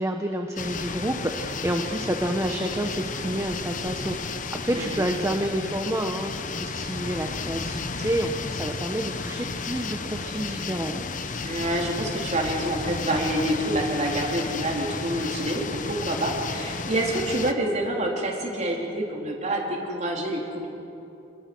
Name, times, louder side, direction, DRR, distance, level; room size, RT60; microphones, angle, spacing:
voice 1, 0.0-4.4 4.6-11.0, right 1 dB, 15° right, 4 dB, 1.1 m, -29 dB
sound 1, 0.6-17.5, left 4 dB, 45° left, 1.0 m, -33 dB
voice 2, 4.7-5.1 11.4-20.7, right 1 dB, 40° right, -1 dB, 3.9 m, -27 dB
29.0 x 21.0 x 6.2 m, 2.9 s
head